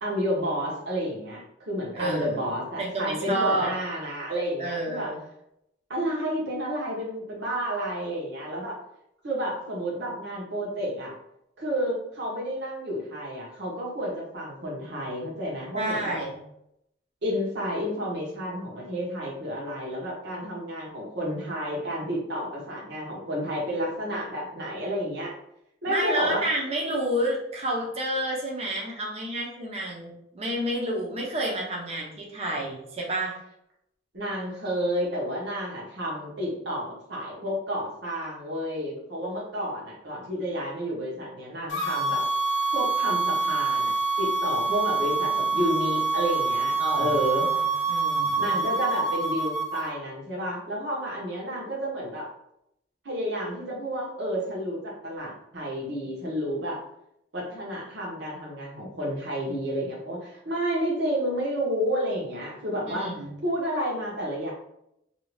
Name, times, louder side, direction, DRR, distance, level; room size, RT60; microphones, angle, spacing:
voice 1, 0.0-5.1 5.9-8.8 9.2-11.1 11.6-16.2 17.2-25.3 25.8-26.4 34.1-42.2 42.7-43.9 44.2-47.4 48.4-52.3 53.0-56.8 57.3-63.1 63.4-64.5, equal, 65° right, -4 dB, 1.0 m, -30 dB
voice 2, 1.9-2.4 2.8-3.7 4.6-5.2 15.7-16.4 25.9-33.3 46.8-47.6 47.9-48.5 62.9-63.3, right 1 dB, 35° right, -2 dB, 0.6 m, -30 dB
sound 1, 41.7-49.9, right 3 dB, 80° left, 0.5 m, -26 dB
2.7 x 2.3 x 3.1 m, 0.78 s
head